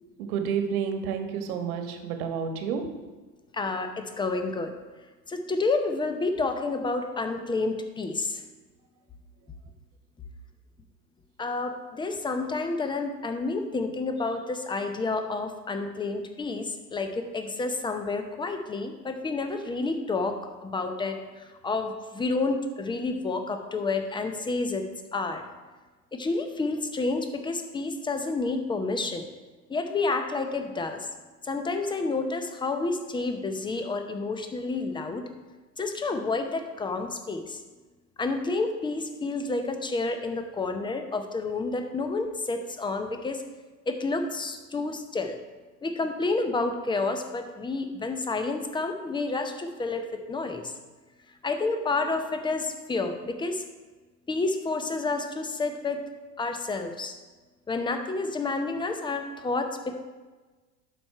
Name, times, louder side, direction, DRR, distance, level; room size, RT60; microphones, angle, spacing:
voice 1, 0.2-3.0, right 7 dB, 55° right, 6 dB, 1.3 m, -30 dB
voice 2, 3.5-4.7 5.3-8.4 11.4-24.9 25.1-25.4 26.1-29.2 29.7-31.1 31.4-35.2 35.8-37.6 38.2-43.4 43.9-45.4 45.8-50.7 51.4-53.6 54.3-56.0 56.4-57.1 57.7-60.0, left 3 dB, 10° left, 6 dB, 0.7 m, -29 dB
11.5 x 5.1 x 4.4 m, 1.3 s
hypercardioid pair, 85°, 50 cm